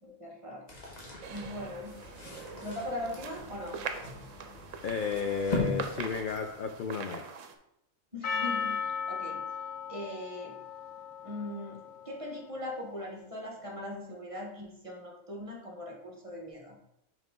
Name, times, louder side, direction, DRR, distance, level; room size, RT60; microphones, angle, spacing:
voice 1, 0.0-1.0 1.3-2.0 2.6-3.9 8.1-9.4 9.9-10.5 11.2-11.8 12.0-16.8, left 1 dB, 25° right, 0 dB, 1.2 m, -40 dB
sound 1, 0.7-6.9, left 2 dB, 35° left, 1.3 m, -40 dB
sound 2, 1.2-7.6, right 6 dB, 75° right, 1.0 m, -43 dB
voice 2, 4.8-7.3, left 6 dB, 65° left, 6 dB, 0.5 m, -33 dB
Percussion, 8.2-12.8, left 6 dB, 85° left, 1.1 m, -37 dB
5.6 x 4.9 x 3.7 m, 0.80 s
omnidirectional pair, 1.4 m